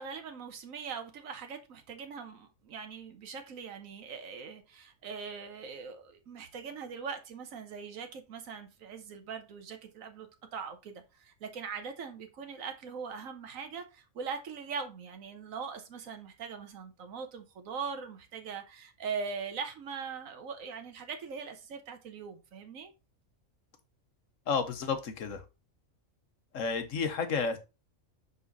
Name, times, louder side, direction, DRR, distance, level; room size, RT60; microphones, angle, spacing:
voice 1, 0.0-22.9, right 5 dB, 85° right, 1.4 m, -41 dB
voice 2, 24.5-25.4 26.5-27.6, left 5 dB, 80° left, 1.4 m, -31 dB
5.5 x 5.4 x 4.0 m
omnidirectional pair, 1.3 m